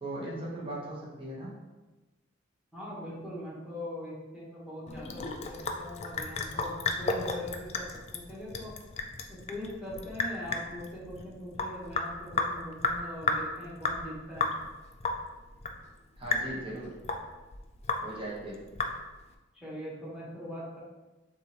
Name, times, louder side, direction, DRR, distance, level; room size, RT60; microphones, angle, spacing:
voice 1, 0.0-1.5 16.2-16.9 18.0-18.6, right 1 dB, 30° right, -6 dB, 1.3 m, -38 dB
voice 2, 2.7-8.7 9.3-14.5 19.5-20.8, left 1 dB, 5° right, -7 dB, 1.4 m, -41 dB
Sink (filling or washing) / Drip, 4.9-19.3, left 4 dB, 35° left, 0.4 m, -34 dB
6.5 x 2.6 x 3.1 m, 1.1 s
head